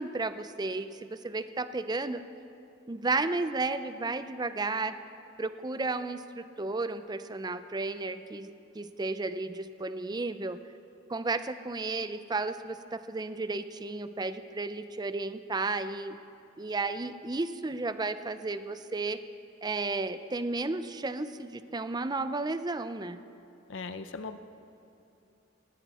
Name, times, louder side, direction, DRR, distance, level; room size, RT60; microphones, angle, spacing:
voice 1, 0.0-2.2 2.9-5.0 5.4-10.6 11.1-16.2 16.6-19.2 19.6-23.2, right 3 dB, 20° right, 12 dB, 0.5 m, -33 dB
voice 2, 23.7-24.4, left 4 dB, 80° left, 10 dB, 0.7 m, -38 dB
18.0 x 18.0 x 4.3 m, 2.9 s
head